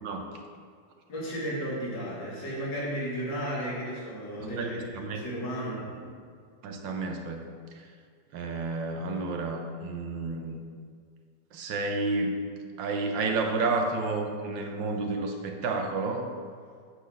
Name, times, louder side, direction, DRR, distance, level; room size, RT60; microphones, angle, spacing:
voice 1, 1.1-5.8, equal, 75° left, -5 dB, 2.7 m, -34 dB
voice 2, 4.4-5.3 6.0-6.1 6.6-7.4 7.7-7.9 8.3-10.6 11.5-12.3 12.8-16.3, right 3 dB, 90° right, 4 dB, 1.6 m, -31 dB
8.8 x 4.0 x 7.0 m, 2.1 s
omnidirectional pair, 2.0 m